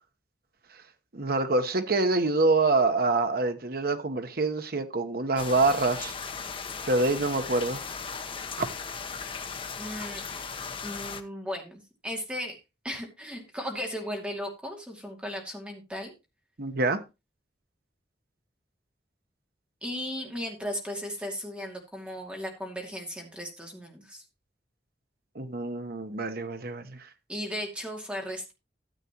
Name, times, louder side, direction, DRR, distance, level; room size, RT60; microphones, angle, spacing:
voice 1, 1.1-6.1 6.9-7.9 8.6-8.7 16.6-17.0 25.3-27.0, right 3 dB, 60° right, 1.1 m, -26 dB
sound 1, 5.4-11.2, left 5 dB, 30° left, 0.9 m, -37 dB
voice 2, 9.8-10.2 10.8-12.6 12.8-16.1 19.8-24.2 27.3-28.5, equal, 5° right, 2.4 m, -36 dB
13.0 x 8.2 x 2.9 m
head